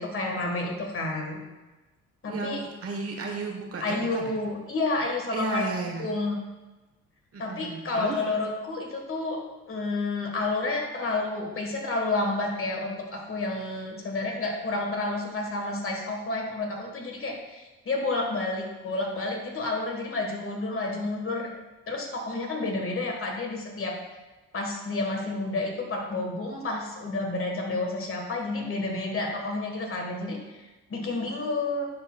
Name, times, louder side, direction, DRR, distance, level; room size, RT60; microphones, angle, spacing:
voice 1, 0.0-1.4 2.2-2.7 3.8-5.6 6.0-6.4 7.4-21.5 21.9-24.0 24.5-30.6 30.9-31.9, left 2 dB, 45° left, 1 dB, 1.5 m, -30 dB
voice 2, 2.3-4.3 5.3-6.1 7.3-8.2, right 3 dB, 50° right, 1 dB, 1.2 m, -33 dB
10.5 x 4.3 x 2.3 m, 1.1 s
cardioid pair, 90°, 30 cm